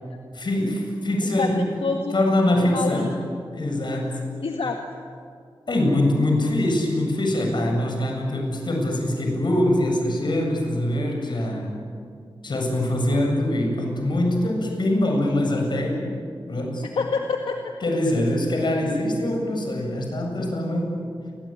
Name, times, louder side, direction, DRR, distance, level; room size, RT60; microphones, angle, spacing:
voice 1, 0.3-1.6 2.1-3.1 3.5-4.2 5.7-11.8 12.4-16.2 16.5-16.8 17.8-20.9, left 1 dB, 60° left, 2 dB, 7.9 m, -23 dB
voice 2, 1.2-2.3 2.6-3.1 4.4-4.8 17.0-17.7, left 4 dB, 85° left, 2 dB, 1.9 m, -27 dB
28.5 x 22.5 x 9.2 m, 2.3 s
wide cardioid pair, 80°, 9 cm